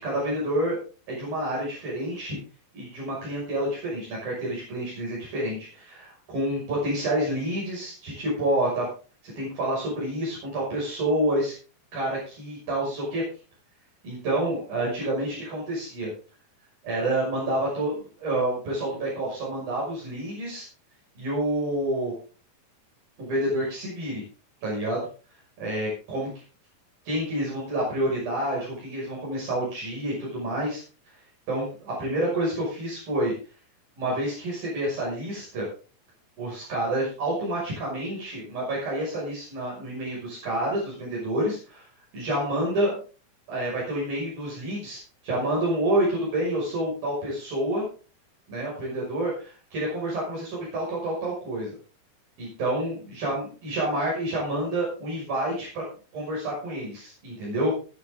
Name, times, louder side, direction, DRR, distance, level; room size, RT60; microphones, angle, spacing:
voice 1, 0.0-0.8 1.1-2.4 2.7-8.9 9.2-11.5 11.9-13.2 14.0-16.1 16.8-20.7 21.2-22.1 23.2-24.2 24.6-25.0 25.6-26.3 27.1-30.8 31.5-33.3 34.0-35.7 36.4-41.9 42.1-42.9 43.5-47.8 48.5-51.7 52.4-55.8 56.1-57.8, right 1 dB, 75° right, -4 dB, 7.9 m, -28 dB
20.5 x 9.5 x 3.8 m, 0.37 s
omnidirectional pair, 4.2 m